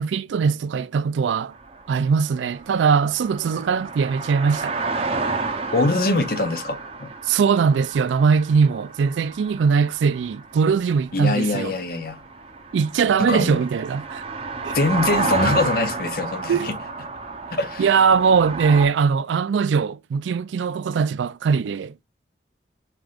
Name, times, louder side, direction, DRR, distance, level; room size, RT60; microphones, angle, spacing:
voice 1, 0.0-1.5 1.9-4.8 7.3-11.7 12.7-14.2 14.6-14.8 16.5-16.7 17.8-21.9, right 5 dB, 85° right, 0.3 m, -21 dB
sound 1, 1.6-18.9, right 3 dB, 30° right, 0.7 m, -31 dB
voice 2, 5.7-7.1 11.1-12.2 13.2-13.6 14.7-16.8 17.5-17.9, left 2 dB, 55° left, 0.7 m, -23 dB
4.7 x 3.7 x 2.4 m
head